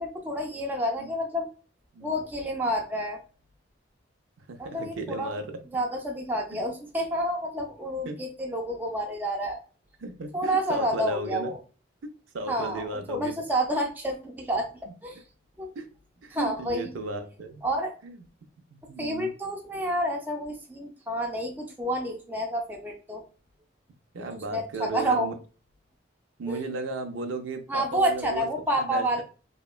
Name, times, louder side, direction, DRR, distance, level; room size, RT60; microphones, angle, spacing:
voice 1, 0.0-1.5 2.0-3.2 4.6-5.4 5.7-9.6 10.3-11.6 12.5-14.7 15.0-15.2 15.6-15.7 16.3-16.9 17.6-18.0 19.0-23.2 24.5-25.3 26.5-26.6 27.7-29.2, equal, 10° right, 1 dB, 0.3 m, -29 dB
voice 2, 4.5-5.8 6.5-6.6 8.1-8.2 10.0-11.5 12.3-13.3 15.8-15.9 16.2-17.6 18.0-18.2 18.7-19.3 24.1-25.3 26.4-28.5 28.8-29.2, right 2 dB, 80° right, 6 dB, 0.5 m, -35 dB
2.8 x 2.2 x 2.3 m, 0.37 s
head